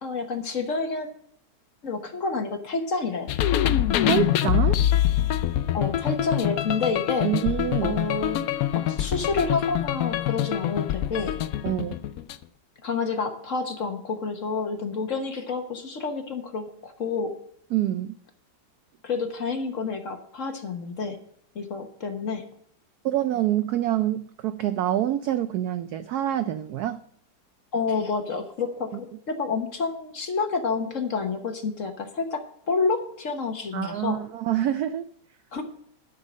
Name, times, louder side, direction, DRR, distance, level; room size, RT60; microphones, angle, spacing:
voice 1, 0.0-1.1 1.8-3.4 5.7-7.3 7.8-8.4 8.8-11.3 12.8-17.3 19.0-21.2 21.5-22.4 27.7-32.4 32.7-34.2 35.5-35.6, left 4 dB, 45° left, 5 dB, 1.2 m, -29 dB
sound 1, 3.3-12.4, left 11 dB, 80° left, 0.7 m, -25 dB
voice 2, 4.1-4.8 7.2-8.0 11.6-12.0 17.7-18.2 23.0-27.0 33.7-35.1, right 12 dB, 80° right, 12 dB, 0.8 m, -26 dB
11.5 x 6.4 x 6.2 m, 0.66 s
omnidirectional pair, 2.1 m